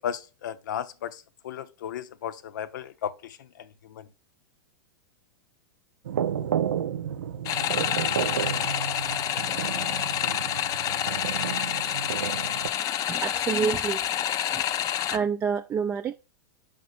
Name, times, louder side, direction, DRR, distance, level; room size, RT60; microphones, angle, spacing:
voice 1, 0.0-4.1, left 9 dB, 70° left, 0.7 m, -35 dB
sound 1, 6.0-12.7, right 9 dB, 75° right, 0.5 m, -31 dB
sound 2, 7.5-15.2, left 11 dB, 35° left, 0.5 m, -28 dB
voice 2, 13.1-14.2 14.5-14.7 15.1-16.1, right 6 dB, 20° right, 0.4 m, -28 dB
5.9 x 5.3 x 4.2 m
hypercardioid pair, 105°, 11 cm